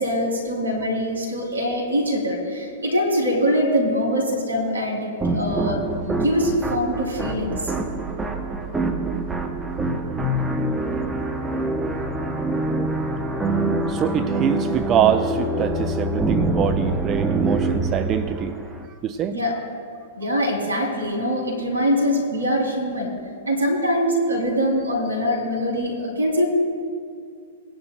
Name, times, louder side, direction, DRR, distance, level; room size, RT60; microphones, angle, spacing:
voice 1, 0.0-7.7 11.7-12.2 19.3-19.5 20.1-23.1 23.5-26.5, equal, 85° right, 1 dB, 2.9 m, -23 dB
sound 1, 5.2-18.9, right 2 dB, 10° right, 0.9 m, -25 dB
voice 2, 11.6-12.3 13.5-18.5 19.0-19.4, right 8 dB, 30° right, 10 dB, 0.5 m, -25 dB
19.0 x 10.5 x 2.2 m, 2.2 s
figure-of-eight pair, 105°, 0 cm